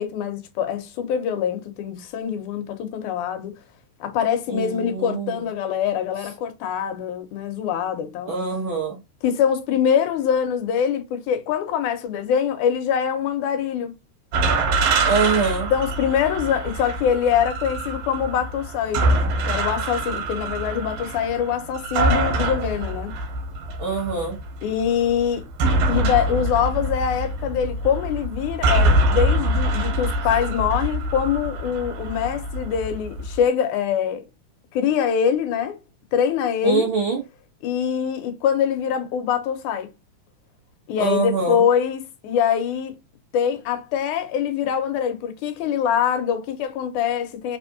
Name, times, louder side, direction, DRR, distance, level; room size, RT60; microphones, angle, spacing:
voice 1, 0.0-3.5 4.0-8.3 9.2-13.9 15.7-19.1 19.5-23.1 24.6-25.5 25.9-34.3 34.7-35.8 36.1-36.9 37.6-39.9 40.9-42.9 43.3-47.6, left 8 dB, 85° left, 2.3 m, -24 dB
voice 2, 4.5-5.4 8.3-9.0 15.1-15.7 23.8-24.4 36.6-37.2 41.0-41.6, right 4 dB, 60° right, 1.4 m, -24 dB
sound 1, 14.3-33.4, right 1 dB, 80° right, 2.5 m, -24 dB
4.8 x 3.6 x 2.7 m
omnidirectional pair, 3.5 m